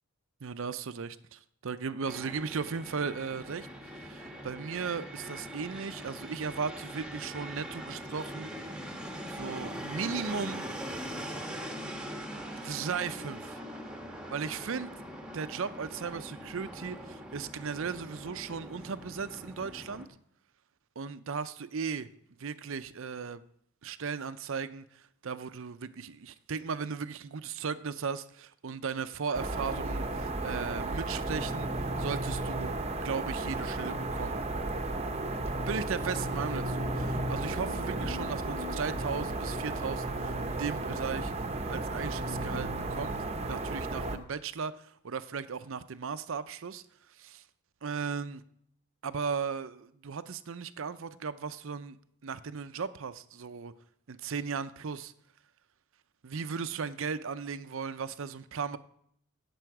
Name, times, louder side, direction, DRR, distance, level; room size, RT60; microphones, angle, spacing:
voice 1, 0.4-3.7 3.9-8.8 9.3-10.7 12.4-13.6 14.3-14.9 15.3-20.1 21.0-22.1 22.4-23.4 23.8-32.7 33.0-34.4 35.6-41.3 41.6-43.2 43.4-46.8 47.1-47.4 47.8-48.4 49.0-52.0 52.2-53.7 54.1-55.1 56.2-58.8, right 5 dB, 60° right, 0.6 m, -36 dB
Fixed-wing aircraft airplane, 2.1-20.1, equal, 5° right, 1.2 m, -42 dB
sound 1, 29.3-44.2, right 2 dB, 30° right, 0.8 m, -33 dB
17.0 x 6.9 x 4.7 m
head